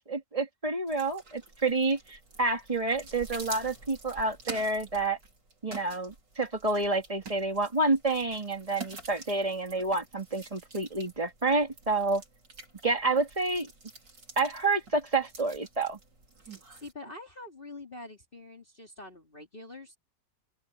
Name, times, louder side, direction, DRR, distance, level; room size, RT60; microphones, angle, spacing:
voice 1, 0.0-5.2 5.6-12.2 12.8-13.7 14.4-16.0, right 3 dB, 20° right, 2.1 m, -29 dB
sound 1, 0.9-16.9, right 3 dB, 85° right, 5.2 m, -48 dB
voice 2, 16.4-20.0, left 2 dB, 30° left, 3.4 m, -46 dB
open air
omnidirectional pair, 1.9 m